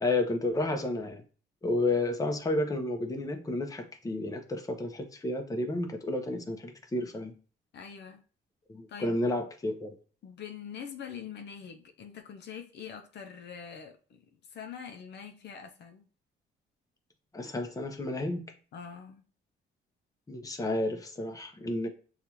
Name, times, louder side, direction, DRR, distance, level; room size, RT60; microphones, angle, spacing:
voice 1, 0.0-1.2 1.6-7.3 8.7-9.9 17.3-18.4 20.3-21.9, left 2 dB, 15° left, 0.7 m, -31 dB
voice 2, 7.7-8.2 8.9-9.3 10.2-14.2 14.5-16.1 18.7-19.2, left 7 dB, 60° left, 0.6 m, -44 dB
6.5 x 2.4 x 2.9 m
cardioid pair, 90°, 20 cm